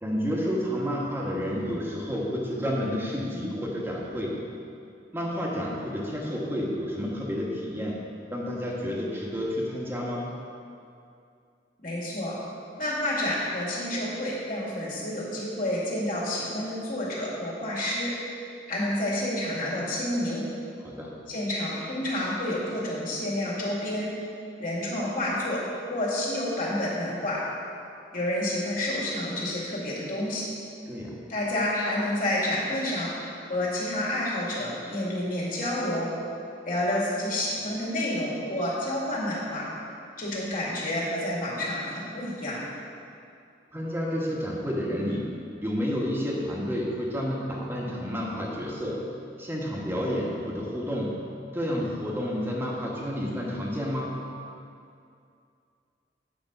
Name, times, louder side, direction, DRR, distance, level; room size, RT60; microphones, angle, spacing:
voice 1, 0.0-4.5 5.1-8.0 8.3-10.4 20.8-21.2 30.9-31.2 43.7-49.1 49.4-51.2 51.5-54.3, equal, 15° right, -3 dB, 1.3 m, -30 dB
voice 2, 11.8-12.4 12.8-18.1 18.7-20.4 21.3-24.1 24.6-25.6 25.9-27.4 28.1-30.5 31.3-33.1 33.5-36.1 36.6-39.6 40.2-42.6, left 1 dB, 50° left, -6 dB, 2.3 m, -29 dB
9.1 x 5.2 x 6.0 m, 2.5 s
head